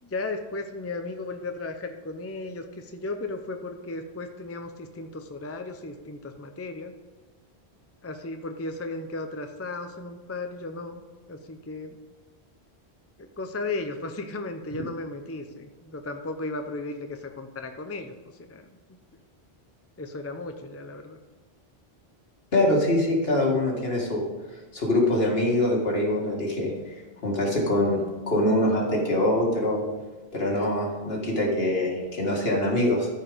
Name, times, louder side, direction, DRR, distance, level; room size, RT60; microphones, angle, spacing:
voice 1, 0.0-6.9 8.0-11.0 11.3-11.9 13.4-18.1 18.4-18.7 20.0-21.2, left 2 dB, 15° left, 6 dB, 0.5 m, -35 dB
voice 2, 22.5-24.2 24.7-26.7 27.2-29.9 30.3-33.1, left 1 dB, 65° left, -2 dB, 2.2 m, -24 dB
13.0 x 4.7 x 5.0 m, 1.3 s
omnidirectional pair, 1.1 m